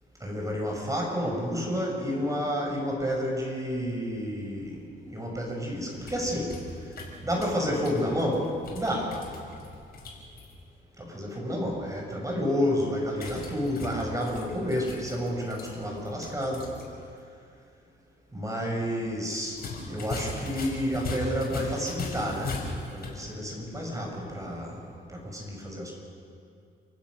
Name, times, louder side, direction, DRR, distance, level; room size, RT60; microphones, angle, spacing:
voice 1, 0.2-6.5 7.2-9.1 11.0-16.7 18.3-22.6 22.9-24.8 25.1-25.9, equal, 15° right, -1 dB, 6.7 m, -30 dB
sound 1, 5.8-10.5 13.1-16.9 17.2-17.3 19.5-23.2, left 3 dB, 50° left, 5.7 m, -39 dB
29.0 x 15.5 x 6.5 m, 2.3 s
cardioid pair, 90°, 20 cm